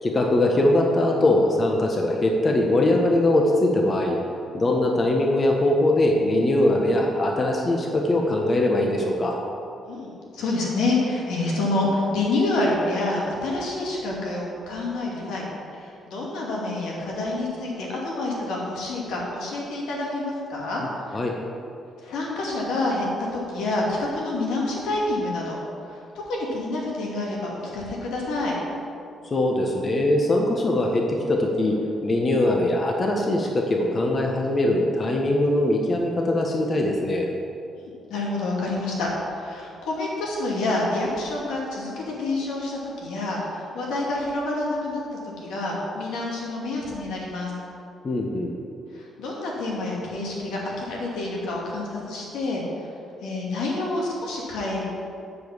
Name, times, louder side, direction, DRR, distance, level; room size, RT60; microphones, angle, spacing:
voice 1, 0.0-4.2 4.5-9.4 21.1-21.4 29.2-31.7 32.0-37.3 48.0-48.5, left 1 dB, 35° left, 0 dB, 1.2 m, -21 dB
voice 2, 10.3-15.5 15.7-20.8 21.1-21.2 22.0-25.6 25.9-26.0 26.3-28.6 38.1-45.0 45.4-47.5 48.9-52.6 53.2-54.9, left 2 dB, 85° left, -3 dB, 2.5 m, -27 dB
10.0 x 5.2 x 7.3 m, 2.6 s
cardioid pair, 90°, 0 cm